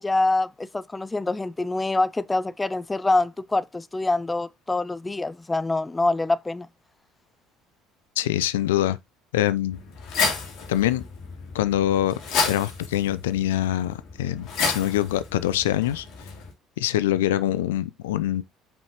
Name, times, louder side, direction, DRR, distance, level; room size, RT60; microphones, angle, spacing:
voice 1, 0.0-6.7, left 2 dB, 15° left, 0.4 m, -25 dB
voice 2, 8.2-9.0 9.3-9.8 10.7-11.0 11.5-16.1 16.8-18.4, left 13 dB, 75° left, 0.4 m, -24 dB
sound 1, 9.7-16.5, left 4 dB, 55° left, 2.5 m, -31 dB
7.2 x 5.5 x 2.9 m
figure-of-eight pair, 60°, 0 cm